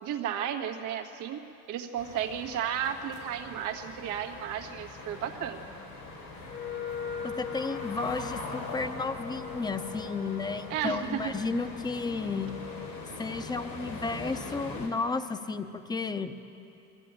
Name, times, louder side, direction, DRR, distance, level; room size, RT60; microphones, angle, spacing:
voice 1, 0.0-5.6 10.7-11.3, right 9 dB, 90° right, 4 dB, 1.7 m, -33 dB
sound 1, 2.0-14.9, left 2 dB, 85° left, 5.2 m, -42 dB
Wind instrument woodwind instrument, 6.5-13.1, left 7 dB, 45° left, 0.8 m, -41 dB
voice 2, 7.2-12.5 13.2-16.4, left 4 dB, 15° left, 9 dB, 0.8 m, -33 dB
22.5 x 15.5 x 8.9 m, 2.8 s
cardioid pair, 130°, 30 cm